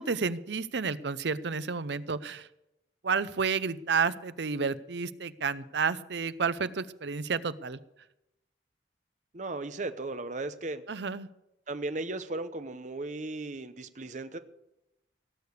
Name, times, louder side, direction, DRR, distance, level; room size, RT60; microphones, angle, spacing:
voice 1, 0.0-2.5 3.0-7.8 10.9-11.3, right 5 dB, 75° right, 15 dB, 0.6 m, -31 dB
voice 2, 9.3-10.8 11.7-14.4, right 2 dB, 40° right, 11 dB, 0.7 m, -36 dB
17.5 x 6.8 x 8.2 m, 0.88 s
head